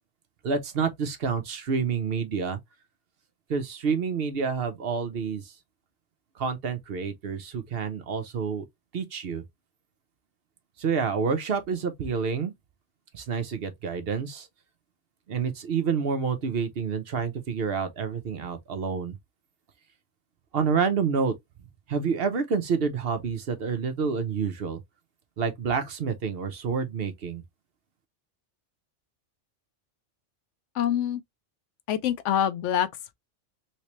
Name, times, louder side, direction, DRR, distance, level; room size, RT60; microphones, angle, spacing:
voice 1, 0.4-2.6 3.5-5.5 6.4-8.6 8.9-9.4 10.8-12.5 13.1-14.5 15.3-19.2 20.5-21.3 21.9-24.8 25.4-27.4, right 5 dB, 60° right, 0.9 m, -28 dB
voice 2, 30.7-31.2 31.9-33.1, left 10 dB, 80° left, 0.9 m, -26 dB
3.2 x 3.1 x 3.0 m
omnidirectional pair, 1.2 m